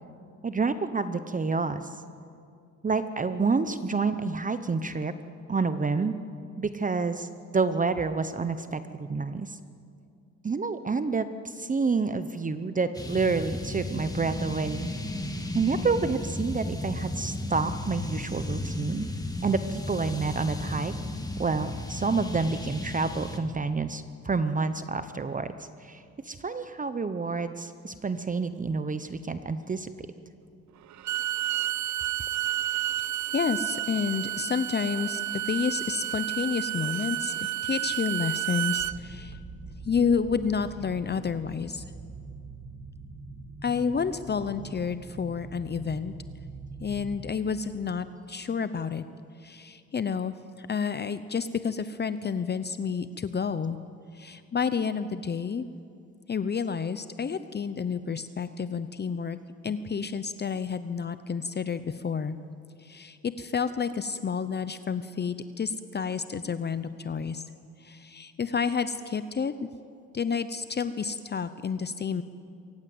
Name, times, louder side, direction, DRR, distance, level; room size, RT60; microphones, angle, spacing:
voice 1, 0.4-1.8 2.8-5.1 5.5-6.2 6.6-9.6 10.4-14.9 15.5-19.1 19.4-20.9 21.4-25.5 25.8-29.9, right 4 dB, 25° right, 11 dB, 0.9 m, -28 dB
sound 1, 12.9-23.4, left 1 dB, 10° left, 2.3 m, -34 dB
Bowed string instrument, 30.9-39.0, right 14 dB, 70° right, 0.6 m, -31 dB
voice 2, 33.3-39.4 39.8-41.8 43.6-46.1 46.8-49.0 49.4-53.8 54.1-55.6 56.3-59.4 59.6-62.4 62.8-67.4 67.8-69.5 70.1-72.2, left 6 dB, 35° left, 12 dB, 0.8 m, -30 dB
sound 2, 38.8-47.2, right 3 dB, 10° right, 5.1 m, -43 dB
23.5 x 18.5 x 7.9 m, 2.4 s
cardioid pair, 90°, 30 cm